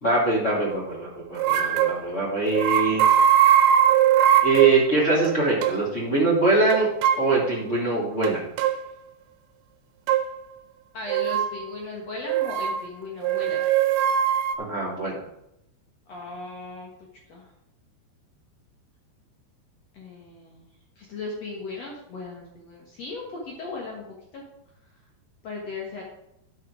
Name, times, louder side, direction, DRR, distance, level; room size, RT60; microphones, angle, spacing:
voice 1, 0.0-3.0 4.4-6.9 7.2-8.4 14.6-15.2, right 3 dB, 20° left, -5 dB, 2.7 m, -23 dB
sound 1, 1.4-2.0 2.5-4.8 5.3-5.4 5.6-5.8 6.7-7.3 8.2-8.8 10.1-10.2 11.1-11.5 12.3-12.8 13.2-14.6, right 10 dB, 80° right, 2.9 m, -20 dB
voice 2, 10.9-13.7 16.1-16.9 17.3-17.5 19.9-20.6 21.0-24.4 25.4-26.0, left 3 dB, 90° left, -2 dB, 1.4 m, -37 dB
11.0 x 6.4 x 5.0 m, 0.80 s
omnidirectional pair, 5.3 m